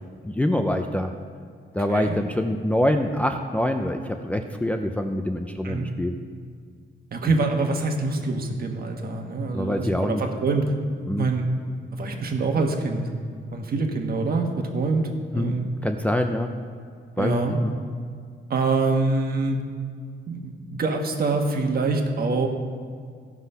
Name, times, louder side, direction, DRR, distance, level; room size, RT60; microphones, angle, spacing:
voice 1, 0.2-1.1 1.7-6.2 9.5-10.2 11.1-11.3 15.3-15.5 15.8-16.5 17.2-17.7, left 1 dB, 5° left, 4 dB, 0.5 m, -25 dB
voice 2, 7.1-10.7 11.2-11.5 11.9-13.1 13.5-15.7 17.2-17.5 18.5-19.6 20.3-22.5, right 3 dB, 50° right, 3 dB, 1.4 m, -25 dB
15.0 x 6.0 x 5.6 m, 2.1 s
wide cardioid pair, 140°, 19 cm